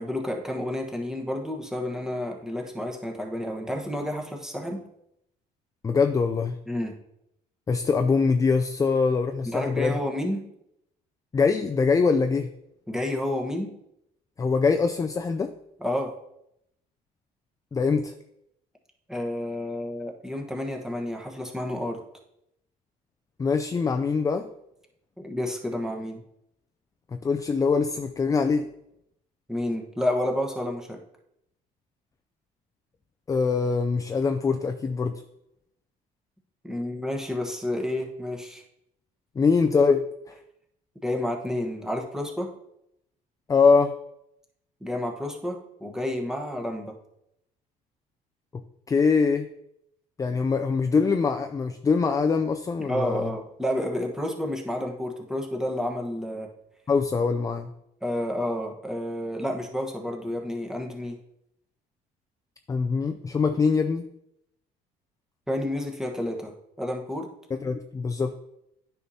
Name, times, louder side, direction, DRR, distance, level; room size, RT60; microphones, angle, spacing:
voice 1, 0.0-4.8 6.7-7.0 9.4-10.4 12.9-13.7 15.8-16.1 19.1-22.0 25.2-26.2 29.5-31.0 36.6-38.6 41.0-42.5 44.8-46.9 52.8-56.5 58.0-61.2 65.5-67.3, left 1 dB, 5° right, 1 dB, 1.2 m, -30 dB
voice 2, 5.8-6.6 7.7-10.0 11.3-12.5 14.4-15.5 17.7-18.1 23.4-24.5 27.1-28.7 33.3-35.2 39.4-40.0 40.3-40.4 43.5-43.9 48.9-49.5 50.2-53.3 56.9-57.7 62.7-64.1 67.5-68.3, left 5 dB, 20° left, 6 dB, 0.4 m, -23 dB
9.4 x 5.6 x 2.8 m, 0.80 s
cardioid pair, 100°, 17 cm